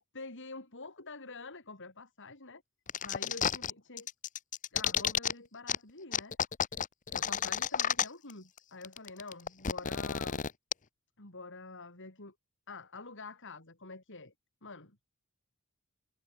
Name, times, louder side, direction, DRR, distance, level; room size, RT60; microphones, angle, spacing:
voice 1, 0.1-2.6 3.0-4.1 4.7-6.4 7.1-10.5 11.2-12.3 12.7-14.3 14.6-15.0, left 3 dB, 55° left, 5.3 m, -47 dB
sound 1, 2.9-3.7 4.0-5.3 5.7-5.8 6.1-8.3 8.6-8.7 8.8-10.7, left 8 dB, 35° left, 0.8 m, -31 dB
head